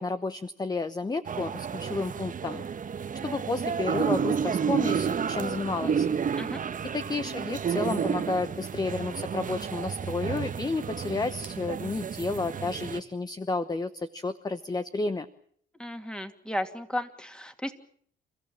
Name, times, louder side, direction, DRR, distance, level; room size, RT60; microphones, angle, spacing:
voice 1, 0.0-2.6 3.2-6.1 6.9-15.3, left 3 dB, 20° left, 11 dB, 1.0 m, -31 dB
sound 1, 1.3-13.0, right 7 dB, 40° right, 1.1 m, -31 dB
voice 2, 15.8-17.7, left 1 dB, 5° left, 7 dB, 2.6 m, -34 dB
29.5 x 14.5 x 8.8 m, 0.63 s
cardioid pair, 90°, 20 cm